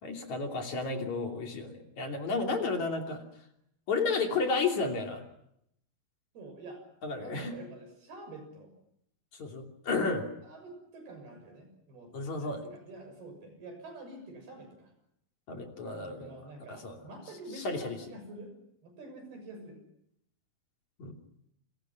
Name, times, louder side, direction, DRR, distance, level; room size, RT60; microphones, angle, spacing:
voice 1, 0.0-3.2 3.9-5.2 7.0-7.5 9.3-10.3 12.1-12.6 15.5-17.0 17.6-18.0 21.0-21.2, left 4 dB, 50° left, 2 dB, 4.1 m, -32 dB
voice 2, 6.3-6.8 7.2-8.7 10.4-14.9 16.0-18.5 18.8-19.8, right 2 dB, 80° right, 6 dB, 8.5 m, -47 dB
29.0 x 27.0 x 5.9 m, 0.76 s
omnidirectional pair, 4.4 m